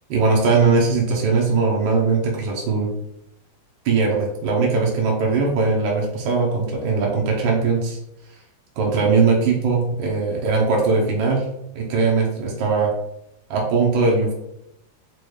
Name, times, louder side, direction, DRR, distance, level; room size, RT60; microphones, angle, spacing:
voice 1, 0.1-2.9 3.8-8.0 8.8-11.4 11.7-12.9 13.5-14.3, right 4 dB, 80° right, -1 dB, 1.5 m, -20 dB
4.8 x 2.2 x 3.1 m, 0.80 s
omnidirectional pair, 2.1 m